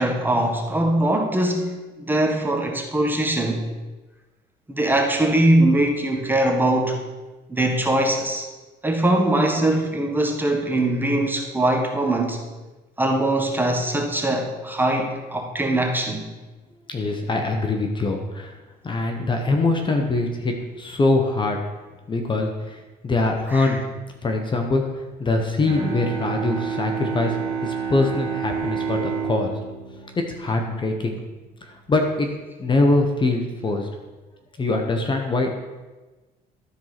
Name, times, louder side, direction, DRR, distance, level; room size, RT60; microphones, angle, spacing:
voice 1, 0.0-3.7 4.7-7.0 7.5-8.5 8.8-12.4 13.0-16.3 23.5-23.7, right 1 dB, 10° right, 2 dB, 1.6 m, -21 dB
voice 2, 16.9-18.6 18.8-21.6 22.1-23.8 24.2-24.8 25.2-29.5 30.2-31.2 31.6-32.3 32.6-33.9 34.6-35.5, left 2 dB, 30° left, 3 dB, 1.2 m, -23 dB
Bowed string instrument, 25.6-31.2, right 6 dB, 30° right, 2.5 m, -29 dB
12.5 x 4.6 x 5.9 m, 1.2 s
cardioid pair, 110°, 17 cm